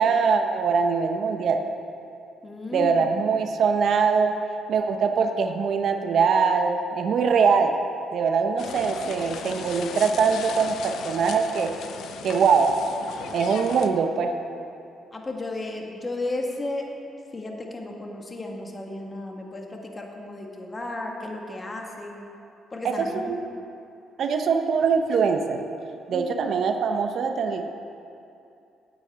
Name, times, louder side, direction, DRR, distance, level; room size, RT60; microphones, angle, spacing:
voice 1, 0.0-1.6 2.7-4.4 4.7-7.8 8.1-11.7 12.2-12.8 13.3-14.3 22.8-23.4 24.2-25.6 26.1-27.7, right 5 dB, 65° right, 5 dB, 0.8 m, -22 dB
voice 2, 2.4-3.0 15.1-16.9 17.3-22.3 22.7-23.3 26.1-26.3, left 2 dB, 25° left, 1 dB, 1.6 m, -34 dB
sound 1, 8.6-13.9, left 7 dB, 80° left, 0.8 m, -37 dB
9.5 x 8.5 x 8.5 m, 2.7 s
cardioid pair, 90°, 0 cm